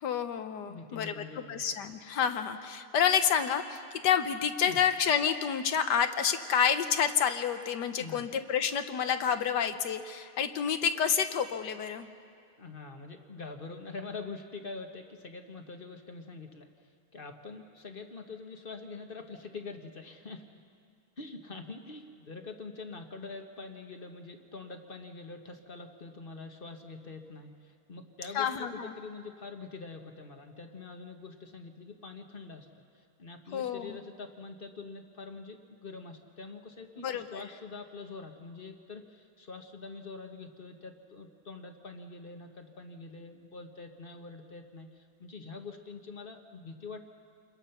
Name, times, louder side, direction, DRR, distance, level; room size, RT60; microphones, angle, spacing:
voice 1, 0.0-1.1 1.5-12.1 28.3-28.9 33.5-34.0 37.0-37.4, left 7 dB, 60° left, 9 dB, 1.3 m, -29 dB
voice 2, 0.6-1.6 4.7-4.8 8.0-8.3 12.6-20.5 21.2-47.0, left 4 dB, 30° left, 5 dB, 1.1 m, -45 dB
28.0 x 21.5 x 5.8 m, 2.3 s
omnidirectional pair, 2.4 m